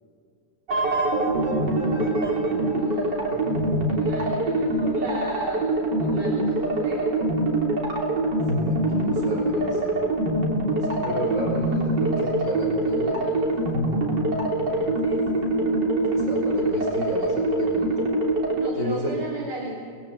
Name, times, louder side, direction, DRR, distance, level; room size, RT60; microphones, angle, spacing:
sound 1, 0.7-18.7, right 1 dB, 90° right, 4.0 m, -24 dB
voice 1, 1.2-3.6 3.9-5.7 6.0-7.2 10.9-11.5 13.2-13.8 15.0-15.9 18.5-19.8, right 2 dB, 75° right, -3 dB, 5.4 m, -37 dB
voice 2, 3.3-3.8 8.5-10.1 10.8-13.2 14.4-15.0 16.1-18.1 18.8-19.2, right 1 dB, 50° right, -1 dB, 5.2 m, -33 dB
29.5 x 21.5 x 8.1 m, 2.3 s
omnidirectional pair, 1.8 m